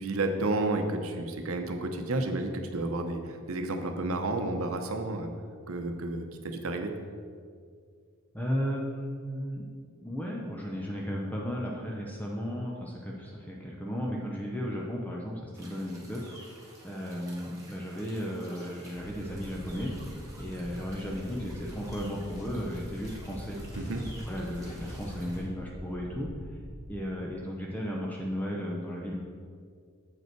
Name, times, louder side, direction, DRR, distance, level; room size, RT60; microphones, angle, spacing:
voice 1, 0.0-5.3 5.7-6.9 23.8-24.0, right 2 dB, 80° right, 5 dB, 0.7 m, -31 dB
voice 2, 8.3-9.6 9.9-16.2 16.6-19.9 20.3-23.6 24.3-26.3 26.9-29.2, equal, 10° left, -2 dB, 0.6 m, -35 dB
sound 1, 15.5-25.4, right 1 dB, 15° right, 1.7 m, -52 dB
sound 2, 19.0-27.0, equal, 70° left, 1.3 m, -44 dB
sound 3, 19.6-25.2, left 1 dB, 35° left, 0.9 m, -48 dB
7.6 x 5.4 x 4.5 m, 2.1 s
head